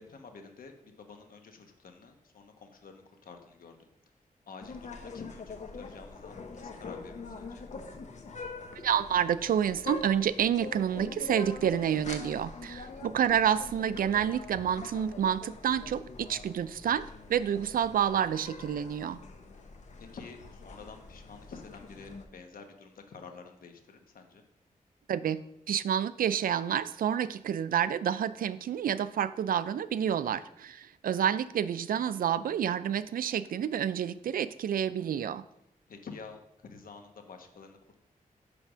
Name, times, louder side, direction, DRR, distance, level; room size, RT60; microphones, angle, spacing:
voice 1, 0.0-3.9 4.5-7.7 12.7-13.0 20.0-24.4 30.2-30.4 35.9-38.0, left 5 dB, 85° left, 5 dB, 1.1 m, -49 dB
sound 1, 4.6-22.2, left 3 dB, 55° left, 0.9 m, -44 dB
voice 2, 8.8-19.2 25.1-35.4, right 9 dB, 85° right, 15 dB, 0.4 m, -29 dB
9.9 x 3.5 x 6.1 m, 0.81 s
wide cardioid pair, 120°, 14 cm